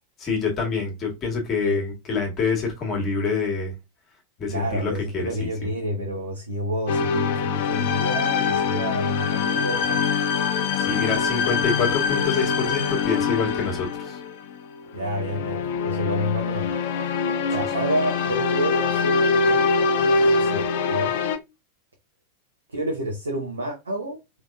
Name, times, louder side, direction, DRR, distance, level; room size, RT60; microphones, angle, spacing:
voice 1, 0.2-3.7 4.4-5.5 10.8-14.2, left 5 dB, 30° left, 1.6 m, -26 dB
voice 2, 4.5-10.0 14.9-16.7 17.5-21.1 22.7-24.2, right 1 dB, 75° right, 0.9 m, -29 dB
sound 1, 6.9-21.4, left 5 dB, 55° left, 0.4 m, -24 dB
3.4 x 3.2 x 2.4 m
figure-of-eight pair, 90°, 0 cm